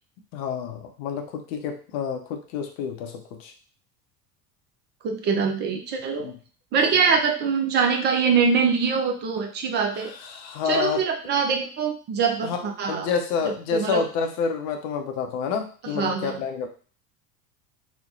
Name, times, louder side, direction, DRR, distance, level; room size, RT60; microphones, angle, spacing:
voice 1, 0.3-3.5 6.2-6.4 9.9-11.0 12.4-16.7, left 6 dB, 50° left, 4 dB, 0.6 m, -29 dB
voice 2, 5.0-6.3 6.7-10.1 10.7-13.1 13.4-14.0 15.9-16.4, right 5 dB, 25° right, 4 dB, 0.4 m, -23 dB
3.0 x 2.0 x 2.7 m, 0.40 s
figure-of-eight pair, 70°, 48 cm